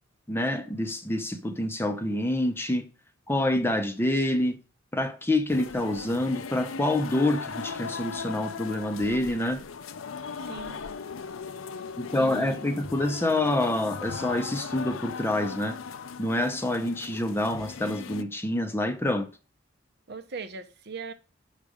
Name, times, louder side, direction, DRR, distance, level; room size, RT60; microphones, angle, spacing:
voice 1, 0.3-2.9 3.3-4.6 4.9-9.6 12.0-15.8 16.2-19.3, left 1 dB, 10° left, 0.7 m, -27 dB
sound 1, 5.5-18.2, left 5 dB, 85° left, 0.6 m, -38 dB
voice 2, 10.4-10.8 11.8-11.9 12.1-12.7 20.1-21.1, right 4 dB, 55° right, 0.8 m, -40 dB
6.4 x 5.0 x 5.0 m
head